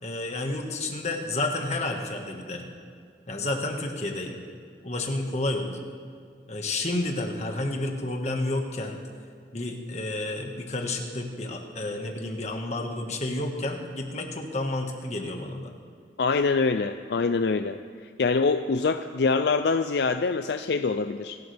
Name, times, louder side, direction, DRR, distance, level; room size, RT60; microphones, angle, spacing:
voice 1, 0.0-2.7 3.3-4.4 4.8-5.8 6.5-9.0 9.5-15.7, left 2 dB, 40° left, 2 dB, 1.6 m, -30 dB
voice 2, 16.2-17.8 18.2-21.4, left 4 dB, 65° left, 9 dB, 0.4 m, -24 dB
27.5 x 12.0 x 3.5 m, 2.2 s
head